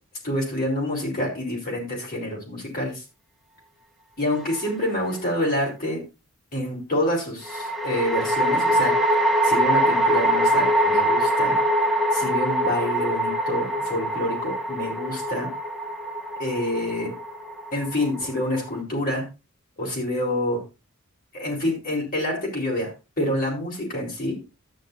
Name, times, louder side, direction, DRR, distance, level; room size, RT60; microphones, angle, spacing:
voice 1, 0.2-3.0 4.2-6.0 6.5-8.9 9.4-11.6 12.1-15.5 16.4-17.1 17.7-19.3 19.8-20.6 21.3-22.9 23.2-24.4, left 1 dB, 45° left, -2 dB, 4.2 m, -27 dB
sound 1, 4.3-5.0 7.5-18.8, right 1 dB, ahead, 1.3 m, -23 dB
12.5 x 9.0 x 2.6 m, 0.29 s
head